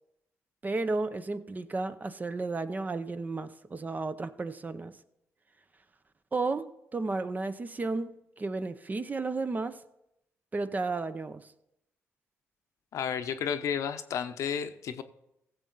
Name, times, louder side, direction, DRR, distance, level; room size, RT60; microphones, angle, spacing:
voice 1, 0.6-5.0 6.3-9.8 10.5-11.4, right 3 dB, 30° right, 0.7 m, -33 dB
voice 2, 12.9-15.0, left 8 dB, 70° left, 0.8 m, -32 dB
16.0 x 7.3 x 3.9 m
supercardioid pair, 65°, 5 cm